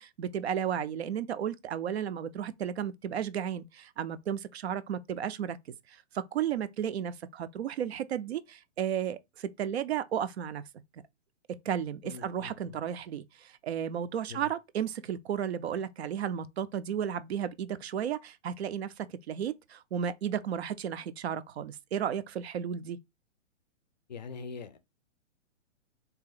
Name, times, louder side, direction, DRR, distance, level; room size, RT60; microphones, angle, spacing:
voice 1, 0.0-5.6 5.9-10.6 11.6-23.0, right 9 dB, 55° right, 0.5 m, -33 dB
voice 2, 12.0-12.7 14.3-14.5 24.1-24.8, left 5 dB, 35° left, 0.4 m, -43 dB
3.9 x 2.9 x 3.8 m
hypercardioid pair, 165°, 37 cm